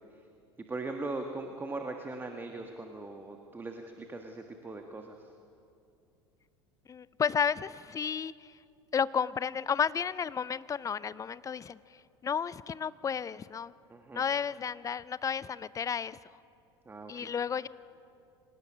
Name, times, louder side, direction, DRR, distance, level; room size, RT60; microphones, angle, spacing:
voice 1, 0.7-5.3 13.9-14.2 16.8-17.3, right 2 dB, 15° right, 4 dB, 1.5 m, -40 dB
voice 2, 6.9-8.5 8.9-11.8 12.2-13.7 14.1-16.2 17.1-17.7, left 7 dB, 25° left, 19 dB, 0.5 m, -32 dB
25.5 x 18.0 x 6.2 m, 2.6 s
hypercardioid pair, 75°, 14 cm